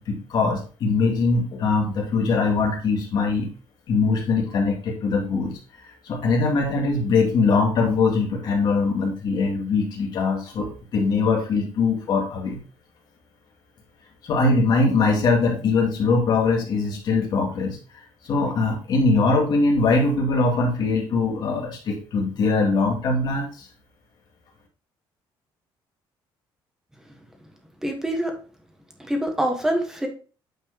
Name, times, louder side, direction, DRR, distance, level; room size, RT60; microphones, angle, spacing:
voice 1, 0.0-3.5 3.9-5.6 6.0-12.6 14.2-17.8 18.2-23.7, left 3 dB, 50° left, 0 dB, 2.2 m, -22 dB
voice 2, 27.8-28.3 29.0-30.1, right 1 dB, 5° right, 3 dB, 1.4 m, -25 dB
8.9 x 4.6 x 2.9 m, 0.37 s
cardioid pair, 160°, 9 cm